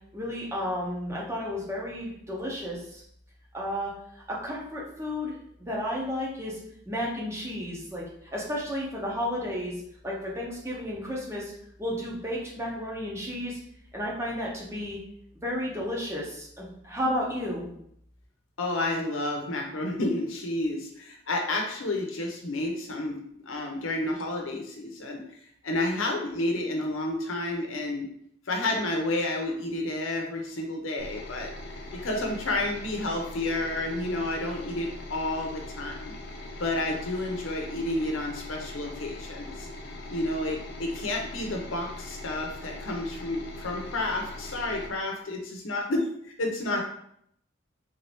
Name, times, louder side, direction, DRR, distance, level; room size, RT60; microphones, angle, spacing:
voice 1, 0.1-3.0 3.5-5.3 5.7-6.6 6.9-8.0 8.3-11.5 11.8-13.6 13.9-15.0 15.4-17.7, equal, 15° right, -4 dB, 0.8 m, -32 dB
voice 2, 18.6-25.2 25.6-28.1 28.5-31.5 31.9-36.1 36.6-39.7 40.1-46.8, left 2 dB, 85° left, 2 dB, 0.8 m, -30 dB
sound 1, 31.0-44.9, left 1 dB, 55° left, 0.6 m, -41 dB
3.6 x 2.7 x 3.4 m, 0.70 s
head